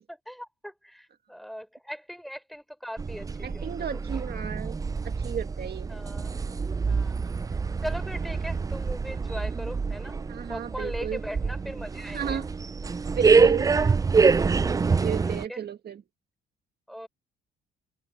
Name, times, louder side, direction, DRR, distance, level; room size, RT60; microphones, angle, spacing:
voice 1, 0.1-4.2 5.9-6.3 6.9-7.4 7.8-10.2 10.5-12.4 13.4-14.0 14.9-15.6 16.9-17.1, equal, ahead, 5.0 m, -40 dB
sound 1, 3.0-15.4, right 5 dB, 20° right, 0.3 m, -26 dB
voice 2, 3.4-4.8 5.0-5.9 10.3-11.2 12.1-12.5 13.1-13.7 15.0-16.0, right 8 dB, 55° right, 2.0 m, -33 dB
cardioid pair, 90°, 20 cm